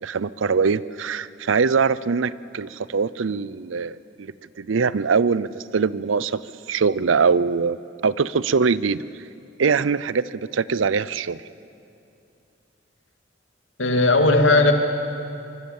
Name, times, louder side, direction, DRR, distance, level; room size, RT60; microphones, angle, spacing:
voice 1, 0.0-4.3 4.6-6.4 6.7-9.0 9.6-11.4, right 5 dB, 85° right, 18 dB, 0.6 m, -22 dB
voice 2, 13.8-14.7, left 2 dB, 80° left, 5 dB, 2.3 m, -16 dB
24.5 x 24.0 x 7.3 m, 2.7 s
head